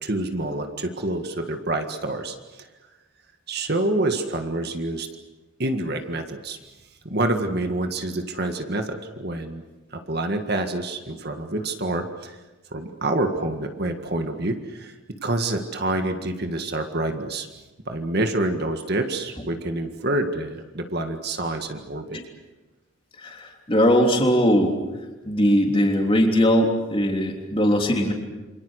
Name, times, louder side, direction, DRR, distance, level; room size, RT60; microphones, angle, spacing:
voice 1, 0.0-2.7 3.5-5.1 5.6-6.6 7.0-9.6 9.9-12.4 12.7-14.9 15.2-17.5 17.9-22.1, right 2 dB, 50° right, 5 dB, 1.8 m, -27 dB
voice 2, 23.2-24.7 25.2-28.1, equal, 25° left, 2 dB, 3.3 m, -20 dB
28.0 x 26.0 x 6.5 m, 1.2 s
head